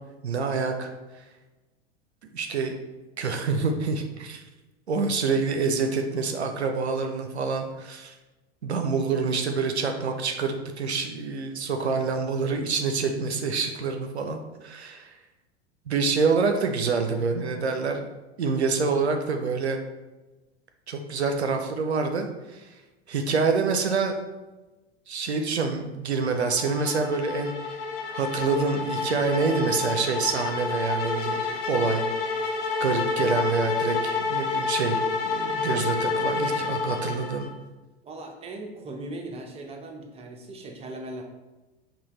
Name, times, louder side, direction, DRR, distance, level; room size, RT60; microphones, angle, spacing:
voice 1, 0.2-1.2 2.3-2.8 3.2-4.4 4.9-8.1 8.6-15.2 15.9-18.0 18.4-19.8 20.9-22.7 23.1-24.1 25.1-27.8 28.1-31.4 31.7-32.5 32.8-37.5, right 4 dB, 80° right, 5 dB, 0.5 m, -27 dB
sound 1, 26.2-37.6, left 4 dB, 60° left, 0.7 m, -29 dB
voice 2, 38.0-41.2, right 2 dB, 20° right, 3 dB, 0.5 m, -38 dB
5.5 x 2.3 x 3.1 m, 1.1 s
figure-of-eight pair, 85°, 32 cm